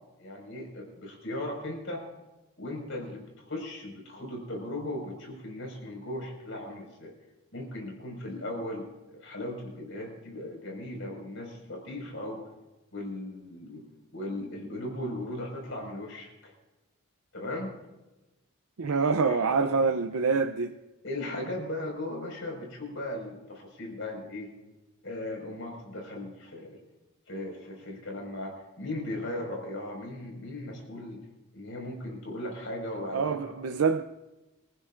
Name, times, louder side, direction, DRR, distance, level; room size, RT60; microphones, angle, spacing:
voice 1, 0.2-2.0 2.6-7.1 7.5-12.4 12.9-13.8 14.1-16.5 17.3-17.7 19.2-19.7 20.3-20.4 21.0-24.5 25.0-26.8 27.3-31.2 31.5-33.6, left 1 dB, 65° left, 5.2 m, -37 dB
voice 2, 18.8-20.7 33.1-34.0, right 5 dB, 90° right, 0.6 m, -26 dB
25.0 x 15.0 x 2.5 m
head